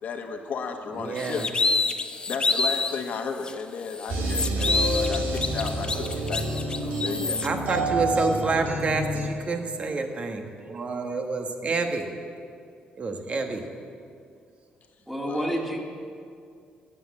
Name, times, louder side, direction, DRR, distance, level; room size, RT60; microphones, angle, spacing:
voice 1, 0.0-1.5 2.3-7.4 15.2-15.6, left 5 dB, 60° left, 5 dB, 1.4 m, -34 dB
voice 2, 1.0-1.5 7.4-12.1 13.0-13.6, right 4 dB, 40° right, 4 dB, 1.5 m, -28 dB
sound 1, 1.2-3.0 3.4-3.5 3.9-7.5, left 3 dB, 30° left, 0.7 m, -27 dB
sound 2, 4.1-9.3, right 1 dB, 85° right, 2.3 m, -28 dB
voice 3, 15.1-15.8, equal, 5° right, -1 dB, 2.2 m, -28 dB
13.0 x 7.6 x 8.6 m, 2.3 s
cardioid pair, 100°, 3 cm